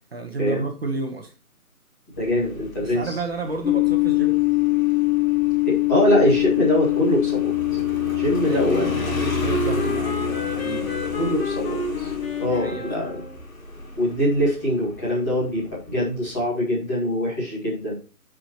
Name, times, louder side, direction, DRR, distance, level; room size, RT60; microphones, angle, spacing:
voice 1, 0.1-1.3 2.8-4.4 8.4-11.0 12.5-13.1, right 3 dB, 45° right, 3 dB, 1.3 m, -32 dB
Motorcycle, 2.2-16.5, equal, 65° left, 2.8 m, -34 dB
voice 2, 2.2-3.2 5.6-8.9 11.2-12.1 12.4-13.2 14.0-17.9, equal, 10° left, -8 dB, 2.0 m, -23 dB
sound 1, 3.6-12.7, left 23 dB, 80° left, 1.1 m, -24 dB
Wind instrument woodwind instrument, 8.7-13.4, left 1 dB, 40° left, 1.6 m, -33 dB
12.0 x 5.1 x 3.0 m, 0.36 s
figure-of-eight pair, 170°, 44 cm